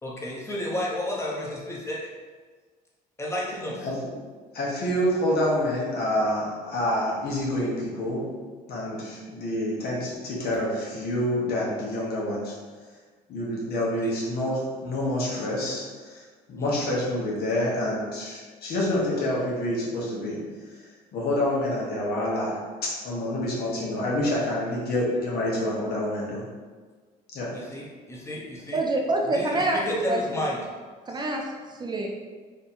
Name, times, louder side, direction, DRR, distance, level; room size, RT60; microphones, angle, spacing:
voice 1, 0.0-2.0 3.2-3.9 14.0-14.1 16.5-16.8 27.7-28.8 29.3-30.6 31.1-31.2, left 1 dB, 15° left, -4 dB, 1.0 m, -32 dB
voice 2, 4.5-8.3 8.7-12.5 13.3-16.2 16.5-20.4 21.1-22.6 23.0-26.4 27.3-27.5, left 1 dB, 65° left, -5 dB, 1.3 m, -27 dB
voice 3, 28.7-30.5 31.1-31.5 31.8-32.2, right 2 dB, 25° right, 1 dB, 0.5 m, -26 dB
3.4 x 2.7 x 4.3 m, 1.5 s
cardioid pair, 110°, 17 cm